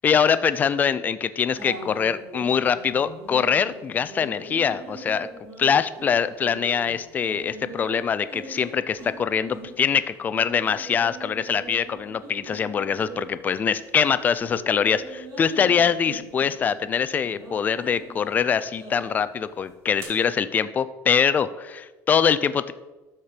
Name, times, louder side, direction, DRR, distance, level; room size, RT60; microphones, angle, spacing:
voice 1, 0.0-5.3 5.6-22.7, left 7 dB, 25° left, 14 dB, 0.4 m, -23 dB
sound 1, 1.6-13.8 14.1-20.1, right 2 dB, 40° right, 3.1 m, -42 dB
12.5 x 4.4 x 4.9 m, 1.1 s
cardioid pair, 160°, 7 cm